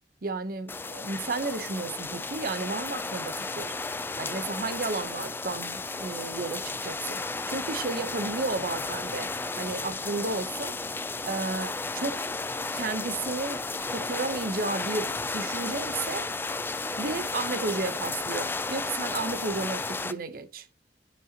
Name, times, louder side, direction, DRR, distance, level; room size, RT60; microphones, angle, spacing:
voice 1, 0.2-3.7 4.2-7.2 7.5-10.8 11.2-12.3 12.7-16.3 17.0-20.7, right 3 dB, 55° right, 0.9 m, -33 dB
sound 1, 0.7-20.1, left 3 dB, 10° left, 0.4 m, -33 dB
9.9 x 5.4 x 2.9 m
head